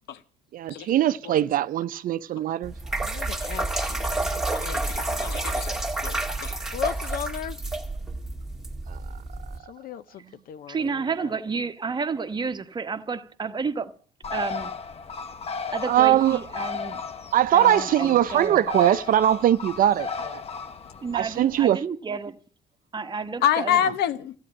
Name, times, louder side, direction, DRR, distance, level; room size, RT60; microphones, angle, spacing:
voice 1, 0.5-2.7 8.9-9.0 15.9-16.4 17.3-20.4 21.1-21.8, right 11 dB, 55° right, 0.6 m, -21 dB
sound 1, 2.6-9.6, right 2 dB, 5° right, 2.1 m, -29 dB
voice 2, 3.0-5.8 6.7-7.6 9.7-10.7, left 9 dB, 60° left, 0.6 m, -37 dB
voice 3, 4.7-5.7 6.0-6.6 23.4-24.3, left 10 dB, 75° left, 1.1 m, -26 dB
voice 4, 10.7-13.9 14.3-14.7 15.7-17.0 17.5-18.7 21.0-22.4 22.9-23.8, right 5 dB, 25° right, 1.1 m, -30 dB
Bird, 14.2-21.6, left 5 dB, 35° left, 1.1 m, -35 dB
14.0 x 9.7 x 8.6 m
cardioid pair, 110°, 17 cm